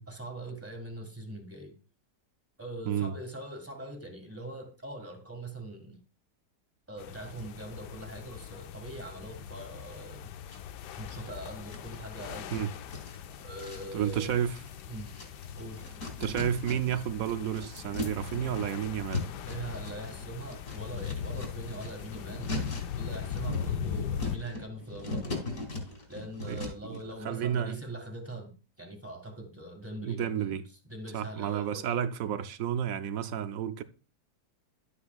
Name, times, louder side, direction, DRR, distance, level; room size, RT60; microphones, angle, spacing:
voice 1, 0.1-1.7 2.6-6.0 6.9-10.3 11.0-12.6 13.4-14.4 14.9-15.1 15.5-15.8 19.5-22.5 23.0-25.5 26.1-30.6 30.9-32.0, right 1 dB, 10° right, 1.6 m, -42 dB
sound 1, 7.0-24.4, left 8 dB, 75° left, 1.1 m, -40 dB
sound 2, 10.5-11.3 11.7-17.1 17.4-27.0, left 2 dB, 45° left, 2.9 m, -40 dB
voice 2, 13.9-14.6 16.2-19.3 26.5-26.6 26.9-27.0 27.2-27.7 30.0-30.6 31.1-33.8, right 9 dB, 65° right, 0.9 m, -31 dB
11.5 x 8.4 x 2.4 m
omnidirectional pair, 1.9 m